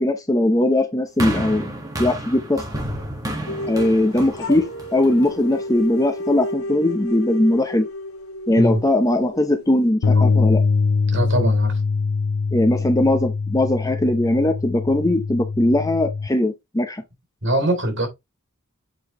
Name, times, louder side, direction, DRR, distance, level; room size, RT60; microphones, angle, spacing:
voice 1, 0.0-1.7 2.0-2.6 3.7-4.6 4.9-7.9 8.5-10.6 12.5-17.0, left 1 dB, 15° left, 0.7 m, -20 dB
sound 1, 1.2-5.5 6.3-6.4, right 1 dB, 15° right, 1.6 m, -30 dB
sound 2, 3.5-10.4, left 1 dB, 75° left, 1.4 m, -32 dB
sound 3, 10.0-16.3, left 4 dB, 90° left, 0.5 m, -22 dB
voice 2, 11.1-11.8 17.4-18.1, right 1 dB, 55° right, 3.2 m, -22 dB
7.8 x 4.9 x 3.0 m
head